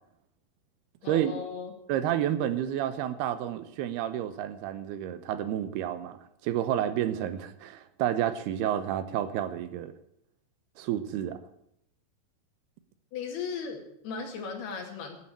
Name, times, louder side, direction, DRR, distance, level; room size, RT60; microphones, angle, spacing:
voice 1, 1.0-1.7 13.1-15.2, left 5 dB, 80° left, 2 dB, 4.3 m, -37 dB
voice 2, 1.9-6.2 6.4-9.9 10.8-11.4, right 11 dB, 85° right, 12 dB, 2.9 m, -30 dB
12.0 x 8.5 x 8.8 m, 0.77 s
omnidirectional pair, 4.5 m